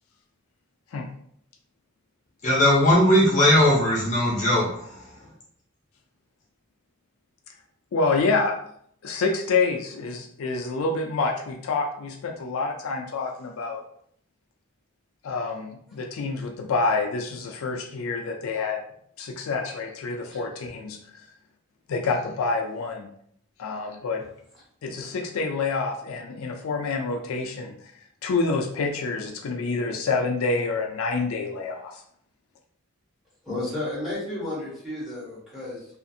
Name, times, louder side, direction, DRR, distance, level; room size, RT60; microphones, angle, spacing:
voice 1, 2.4-4.9, left 1 dB, 35° left, -5 dB, 0.7 m, -19 dB
voice 2, 7.9-8.5 9.0-13.8 15.2-18.8 19.2-21.2 21.9-23.1 23.6-24.3 24.8-27.9 28.2-32.0, left 4 dB, 80° left, 2 dB, 0.4 m, -27 dB
voice 3, 33.4-35.9, left 1 dB, ahead, -9 dB, 1.2 m, -32 dB
2.5 x 2.4 x 2.6 m, 0.67 s
head